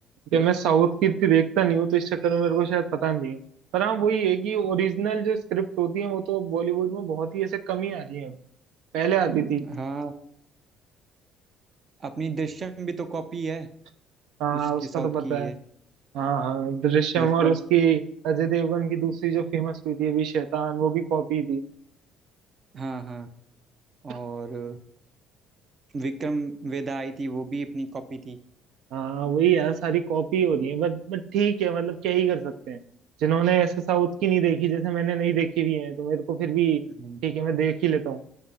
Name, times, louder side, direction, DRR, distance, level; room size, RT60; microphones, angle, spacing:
voice 1, 0.3-3.4 3.7-8.3 8.9-9.7 14.4-15.5 16.1-21.6 28.9-32.8 33.2-36.8 37.2-38.2, right 8 dB, 70° right, 11 dB, 0.6 m, -24 dB
voice 2, 9.6-10.1 12.0-13.7 14.5-15.5 17.2-17.6 22.7-23.3 24.0-24.8 25.9-28.4 37.0-37.2, right 3 dB, 30° right, 11 dB, 0.6 m, -32 dB
7.5 x 6.6 x 5.6 m, 0.69 s
cardioid pair, 160°, 0 cm